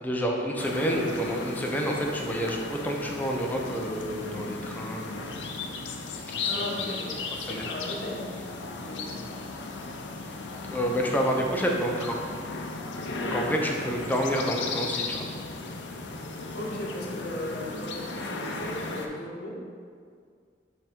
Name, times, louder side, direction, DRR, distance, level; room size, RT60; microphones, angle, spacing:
voice 1, 0.0-5.3 6.4-6.8 7.4-7.6 10.7-12.2 13.2-15.2, equal, 10° left, -1 dB, 0.6 m, -29 dB
sound 1, 0.6-19.1, left 3 dB, 85° left, 0.6 m, -36 dB
voice 2, 6.4-8.3 8.6-9.2 13.3-13.9 16.5-19.6, left 1 dB, 60° left, -3 dB, 1.1 m, -37 dB
5.4 x 3.5 x 5.1 m, 2.1 s
head